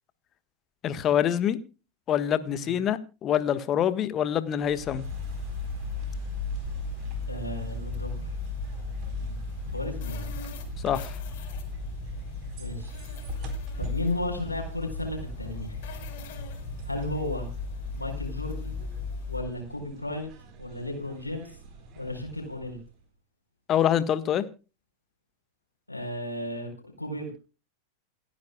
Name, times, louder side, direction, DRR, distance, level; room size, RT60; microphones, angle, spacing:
voice 1, 0.8-1.6 2.1-5.0 10.8-11.1 23.7-24.4, left 10 dB, 30° left, 1.4 m, -25 dB
sound 1, 4.6-23.0, right 1 dB, 40° right, 4.0 m, -40 dB
sound 2, 5.0-19.4, left 5 dB, 50° left, 4.5 m, -36 dB
voice 2, 7.3-8.3 9.1-9.4 9.7-10.3 12.6-13.0 13.8-16.0 16.8-17.5 18.0-18.8 19.3-20.3 20.6-21.5 22.0-22.8 25.9-27.3, left 1 dB, 85° left, 4.4 m, -34 dB
28.5 x 9.8 x 2.2 m
figure-of-eight pair, 90°, 0 cm